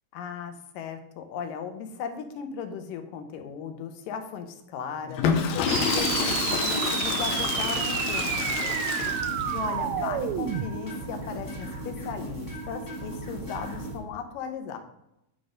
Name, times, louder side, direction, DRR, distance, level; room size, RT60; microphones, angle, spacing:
voice 1, 0.1-8.8 9.5-14.8, left 7 dB, 90° left, 7 dB, 2.5 m, -37 dB
Water / Toilet flush, 5.1-9.6, left 6 dB, 70° left, 1.7 m, -28 dB
sound 1, 5.7-10.7, right 10 dB, 80° right, 1.6 m, -30 dB
sound 2, 6.0-14.0, right 1 dB, 15° left, 0.8 m, -37 dB
10.0 x 4.1 x 5.0 m, 0.81 s
omnidirectional pair, 3.8 m